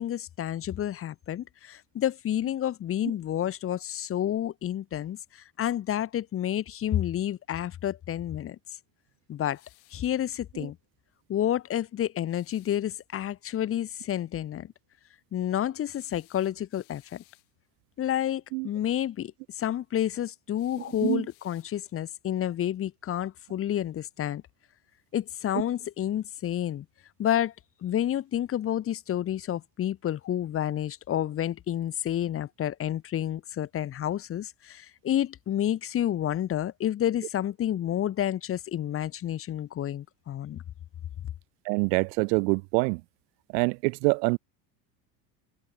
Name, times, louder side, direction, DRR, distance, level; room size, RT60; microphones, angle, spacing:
voice 1, 0.0-8.6 9.3-9.6 9.9-10.8 11.3-14.7 15.3-17.2 18.0-19.3 19.6-24.4 25.1-26.8 27.2-27.5 27.8-40.6, left 11 dB, 25° left, 0.8 m, -30 dB
sound 1, 9.5-10.1 12.3-12.9 15.9-17.5 20.5-22.0, left 35 dB, 75° left, 6.0 m, -61 dB
voice 2, 41.7-43.0 43.5-44.4, right 29 dB, 80° right, 0.6 m, -25 dB
supercardioid pair, 115°, 50 cm